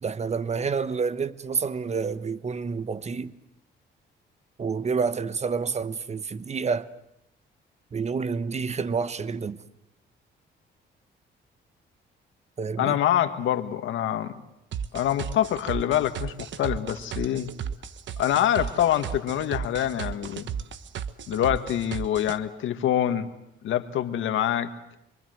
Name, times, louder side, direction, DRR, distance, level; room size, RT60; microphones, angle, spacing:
voice 1, 0.0-3.4 4.6-6.9 7.9-9.6 12.6-13.0, right 5 dB, 35° right, 1.2 m, -28 dB
voice 2, 12.8-14.4 14.9-17.5 18.2-20.5 21.3-23.3 23.6-24.7, left 11 dB, 80° left, 1.9 m, -25 dB
sound 1, 14.7-22.4, right 8 dB, 70° right, 1.4 m, -34 dB
26.0 x 24.5 x 8.0 m
cardioid pair, 90°, 20 cm